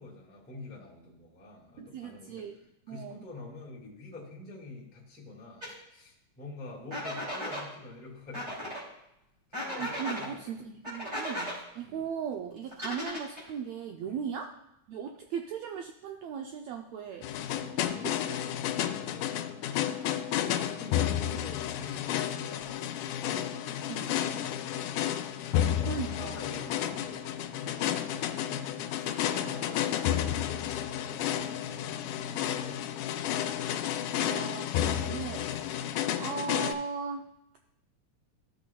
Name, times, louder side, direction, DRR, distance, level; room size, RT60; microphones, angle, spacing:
voice 1, 0.0-2.5 2.9-8.8 9.5-10.4 11.8-12.1 14.1-14.2 17.4-18.2 18.5-22.8 23.2-25.0 25.4-33.0, left 3 dB, 5° left, -4 dB, 1.0 m, -46 dB
voice 2, 1.8-2.6 2.9-3.1 9.8-14.5 14.9-17.3 18.0-18.4 21.3-21.4 23.9-24.2 25.9-26.4 33.4-33.5 34.2-37.2, right 7 dB, 85° right, 4 dB, 1.5 m, -38 dB
sound 1, 5.6-5.7 6.9-7.6 8.3-8.8 9.5-10.3 10.8-11.6 12.7-13.5, left 1 dB, 15° right, 2.6 m, -36 dB
sound 2, 17.2-36.7, left 11 dB, 85° left, 2.1 m, -31 dB
14.0 x 6.3 x 2.2 m, 0.84 s
omnidirectional pair, 3.6 m